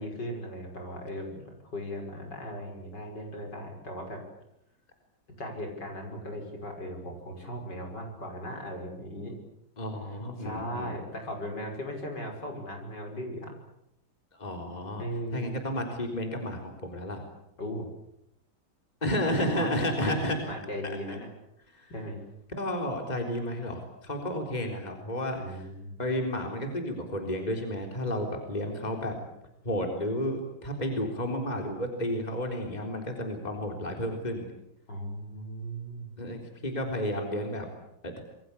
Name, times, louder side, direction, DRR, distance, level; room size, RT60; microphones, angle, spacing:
voice 1, 0.0-4.2 5.4-9.4 10.4-13.5 15.0-15.6 17.6-17.9 19.3-21.3 21.9-22.2 25.3-26.1 34.9-36.1, equal, 55° left, 3 dB, 6.6 m, -38 dB
voice 2, 9.8-11.0 14.3-15.0 15.3-17.2 19.0-20.4 20.8-21.2 21.7-21.9 22.5-25.7 26.0-29.2 29.6-34.5 36.2-37.7 38.0-38.2, left 1 dB, 20° left, 3 dB, 4.0 m, -32 dB
27.5 x 22.5 x 8.5 m, 0.79 s
omnidirectional pair, 2.2 m